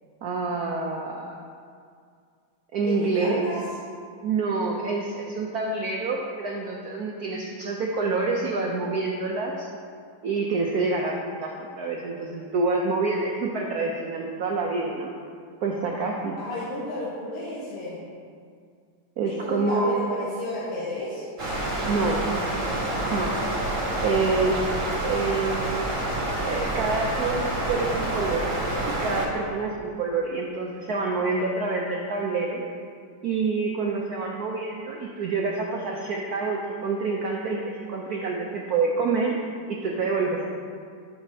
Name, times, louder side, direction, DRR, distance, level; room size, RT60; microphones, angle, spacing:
voice 1, 0.2-1.3 2.7-3.5 4.2-9.7 10.2-15.1 15.6-16.4 19.2-20.0 21.9-22.2 23.0-23.3 24.0-24.6 25.0-26.2 26.4-28.5 28.9-32.6 33.2-39.4 39.7-40.4, right 3 dB, 80° right, -1 dB, 0.8 m, -27 dB
voice 2, 2.8-3.6 16.4-18.0 19.2-21.3, left 1 dB, 90° left, -8 dB, 2.1 m, -32 dB
sound 1, 21.4-29.2, right 1 dB, 40° right, 1.8 m, -28 dB
12.0 x 6.3 x 2.8 m, 2.2 s
omnidirectional pair, 2.4 m